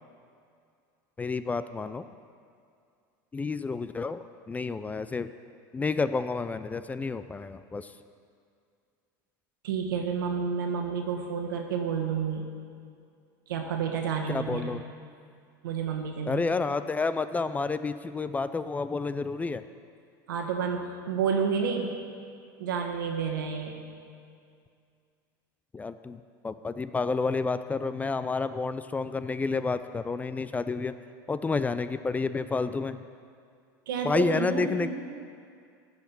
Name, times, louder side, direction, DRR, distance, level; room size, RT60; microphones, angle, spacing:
voice 1, 1.2-2.1 3.3-5.3 5.7-7.9 14.3-14.8 16.3-19.6 25.7-30.9 31.3-33.0 34.0-34.9, left 4 dB, 15° left, 12 dB, 0.3 m, -30 dB
voice 2, 9.6-12.4 13.5-14.8 15.6-16.4 20.3-21.9 22.6-23.8 33.9-34.9, right 6 dB, 90° right, 2 dB, 1.4 m, -30 dB
14.0 x 4.9 x 6.0 m, 2.3 s
supercardioid pair, 110°, 11 cm